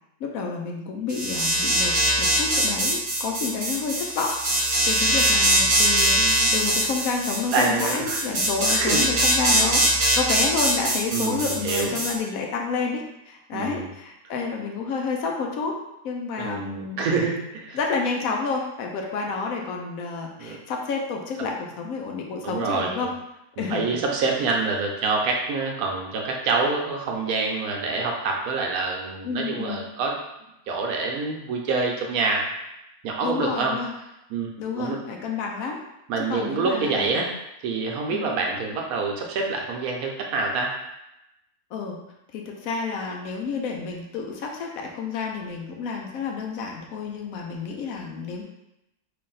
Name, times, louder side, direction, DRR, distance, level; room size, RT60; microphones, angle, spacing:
voice 1, 0.2-4.4 4.9-15.8 16.0-17.0 17.7-23.1 23.6-24.0 29.2-29.9 33.2-33.9 34.6-35.8 36.3-37.2 38.1-38.3 41.7-42.0 42.3-48.4, left 5 dB, 75° left, 1 dB, 1.0 m, -30 dB
sound 1, 1.1-12.1, right 1 dB, 40° right, 0.4 m, -22 dB
voice 2, 6.2-6.5 7.5-8.2 8.7-9.1 9.5-9.7 11.1-12.0 13.5-13.9 16.4-17.8 20.4-20.6 22.4-23.1 23.6-30.2 30.7-32.5 33.0-33.7 34.3-34.5 34.7-35.0 36.1-37.3 37.6-40.7, right 4 dB, 80° right, 0 dB, 1.1 m, -26 dB
3.3 x 2.5 x 3.8 m, 0.88 s
omnidirectional pair, 1.6 m